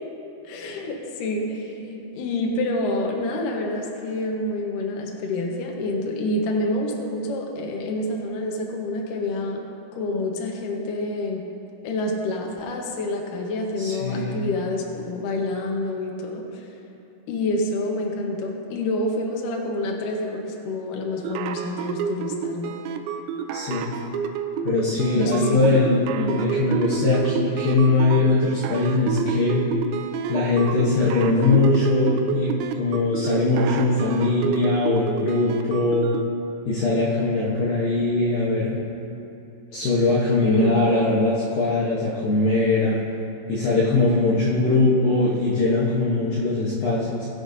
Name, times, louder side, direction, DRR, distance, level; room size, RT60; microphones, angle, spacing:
voice 1, 0.4-9.6 9.9-11.4 11.8-16.7 17.3-22.8 25.1-25.6 26.1-26.4 40.4-40.9, left 1 dB, 85° left, 0 dB, 1.8 m, -27 dB
voice 2, 13.8-14.4 23.5-23.9 24.6-26.0 26.3-29.6 30.3-36.1 36.7-38.8 39.7-43.0 43.5-47.3, left 2 dB, 70° left, -7 dB, 2.2 m, -21 dB
sound 1, 21.2-36.3, right 7 dB, 80° right, 2.7 m, -29 dB
20.5 x 8.1 x 2.7 m, 2.8 s
omnidirectional pair, 5.6 m